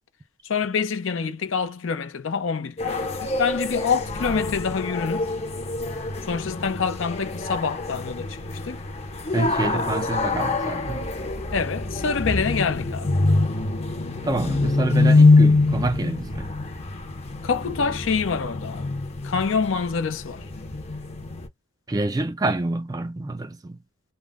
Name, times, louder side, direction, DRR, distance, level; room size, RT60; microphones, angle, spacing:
voice 1, 0.4-5.3 6.3-8.8 9.7-9.8 11.5-13.1 17.4-19.0 19.2-20.4, left 5 dB, 85° left, 0.5 m, -26 dB
sound 1, 2.8-21.5, left 3 dB, 35° left, 0.6 m, -24 dB
voice 2, 9.3-11.1 14.2-16.5 21.9-23.8, right 2 dB, 20° right, 0.3 m, -27 dB
2.1 x 2.0 x 3.4 m
head